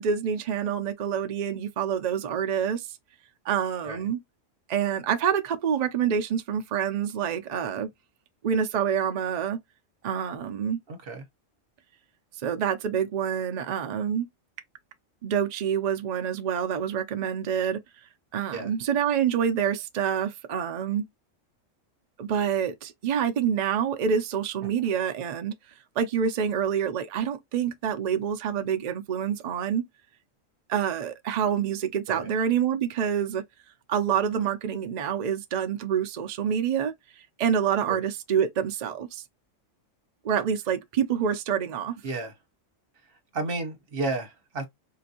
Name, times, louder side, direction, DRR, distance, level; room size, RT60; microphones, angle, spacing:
voice 1, 0.0-2.9 3.5-4.2 4.7-7.9 8.4-9.6 10.0-10.8 12.4-14.3 15.2-17.8 18.3-21.0 22.2-25.5 26.0-29.9 30.7-33.4 33.9-36.9 37.4-39.2 40.2-42.0, right 8 dB, 80° right, 0.3 m, -27 dB
voice 2, 10.9-11.2 18.5-18.7 24.6-24.7 32.1-32.3 37.9-38.0 42.0-42.3 43.3-44.7, right 3 dB, 50° right, 1.1 m, -32 dB
3.8 x 2.5 x 2.7 m
omnidirectional pair, 1.3 m